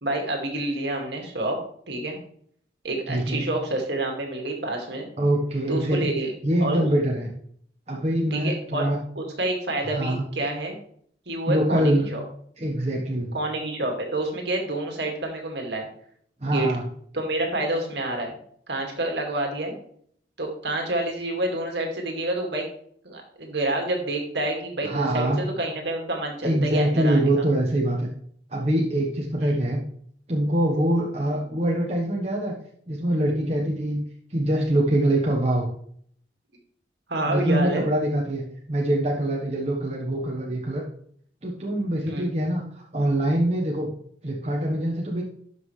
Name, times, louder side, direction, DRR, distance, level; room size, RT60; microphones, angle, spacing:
voice 1, 0.0-1.6 1.9-2.2 2.8-5.1 5.7-6.3 6.6-6.8 8.3-8.9 9.2-10.8 11.3-12.2 13.3-15.9 16.5-16.7 17.1-18.3 18.7-19.7 20.4-22.6 23.0-27.5 29.4-29.6 37.1-37.8 42.1-42.3, right 2 dB, 70° right, 2 dB, 2.1 m, -28 dB
voice 2, 3.1-3.4 5.2-6.1 6.4-7.3 7.9-9.0 9.9-10.2 11.5-12.1 12.6-13.3 16.4-16.8 24.8-25.4 26.4-28.1 28.5-29.8 30.3-32.5 32.9-34.0 34.3-35.7 37.3-38.4 38.7-40.8 41.4-43.9 44.2-45.2, right 1 dB, 35° right, -2 dB, 1.1 m, -24 dB
12.0 x 5.6 x 3.2 m, 0.62 s
head